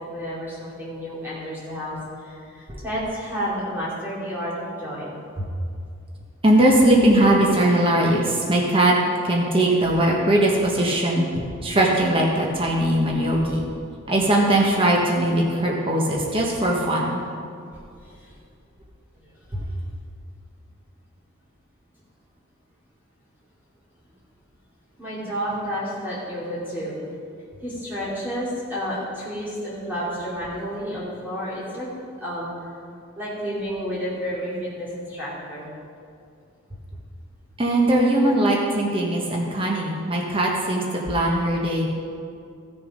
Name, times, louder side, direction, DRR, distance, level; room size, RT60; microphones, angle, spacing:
voice 1, 0.0-5.1 18.0-18.3 19.2-19.3 25.0-27.0 27.6-31.9 32.2-32.7 33.1-35.7, equal, 10° right, -9 dB, 2.7 m, -31 dB
voice 2, 6.4-8.9 9.2-13.6 14.1-17.2 19.5-19.6 37.6-41.9, right 1 dB, 25° right, -2 dB, 1.3 m, -20 dB
15.0 x 6.8 x 5.2 m, 2.4 s
head